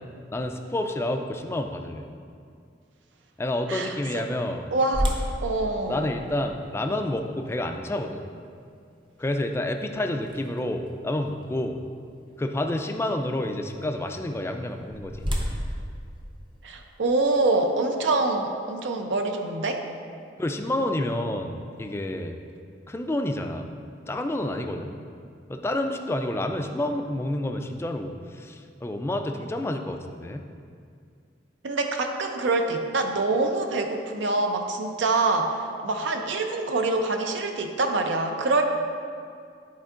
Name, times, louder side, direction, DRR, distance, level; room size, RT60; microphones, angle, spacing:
voice 1, 0.3-2.0 3.4-4.6 5.9-8.2 9.2-11.8 12.4-15.2 20.4-22.4 22.9-23.7 24.1-24.9 25.5-30.4, left 1 dB, 15° left, 5 dB, 0.3 m, -29 dB
voice 2, 3.7-4.2 4.7-5.2 5.4-6.1 16.6-19.8 31.6-35.6 35.8-38.6, right 3 dB, 75° right, 4 dB, 0.5 m, -25 dB
sound 1, 4.9-10.9 11.4-11.5 12.1-12.4 14.4-17.1, equal, 25° right, 0.7 m, -33 dB
10.0 x 4.4 x 2.5 m, 2.3 s
head